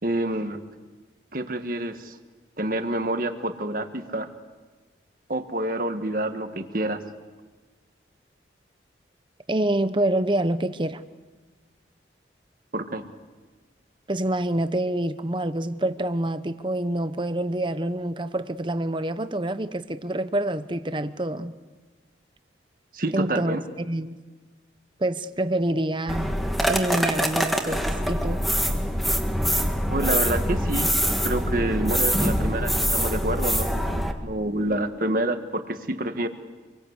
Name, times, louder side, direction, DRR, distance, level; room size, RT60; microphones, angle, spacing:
voice 1, 0.0-0.6 1.3-2.2 2.6-4.3 5.3-7.0 12.7-13.0 22.9-23.6 29.9-30.9 31.2-36.3, right 1 dB, 50° right, 1.7 m, -28 dB
voice 2, 9.5-11.0 14.1-21.6 23.1-24.2 25.0-26.4 26.7-28.4, right 1 dB, 25° right, 0.9 m, -27 dB
sound 1, 26.1-34.1, equal, ahead, 1.6 m, -24 dB
27.5 x 23.0 x 8.2 m
head